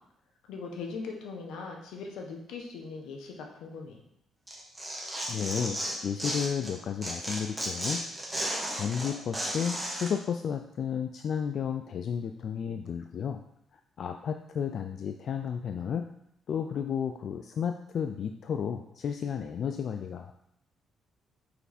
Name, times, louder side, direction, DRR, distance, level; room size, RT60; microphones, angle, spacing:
voice 1, 0.5-4.0, left 4 dB, 90° left, 2 dB, 1.1 m, -40 dB
Tearing, 4.5-6.7 7.0-10.1, right 1 dB, 5° right, 1.6 m, -34 dB
voice 2, 5.3-8.0 8.7-13.4 14.0-16.1 16.5-20.3, left 7 dB, 60° left, 6 dB, 0.4 m, -32 dB
5.9 x 4.6 x 4.1 m, 0.75 s
cardioid pair, 90°, 0 cm